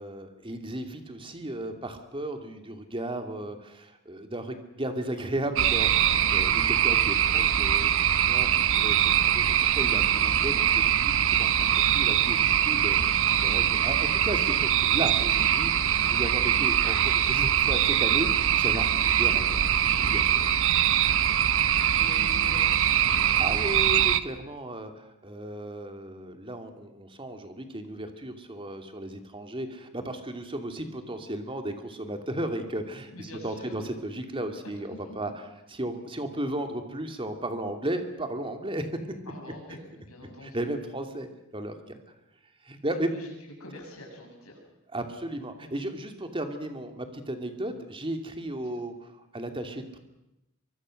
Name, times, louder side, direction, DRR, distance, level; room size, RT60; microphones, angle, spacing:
voice 1, 0.0-11.5 11.9-12.4 12.6-13.2 13.4-20.6 23.4-35.3 35.7-38.9 39.7-39.8 40.4-42.0 42.6-43.1 44.9-50.0, right 1 dB, 25° right, 6 dB, 2.5 m, -35 dB
sound 1, 5.6-24.2, right 10 dB, 65° right, 1.0 m, -23 dB
voice 2, 13.0-13.6 20.8-21.0 22.0-23.4 33.1-33.9 35.0-35.1 39.3-40.6 42.9-43.3 43.6-44.6 48.6-48.8, left 1 dB, 80° left, 0 dB, 7.4 m, -45 dB
24.0 x 24.0 x 6.5 m, 0.91 s
head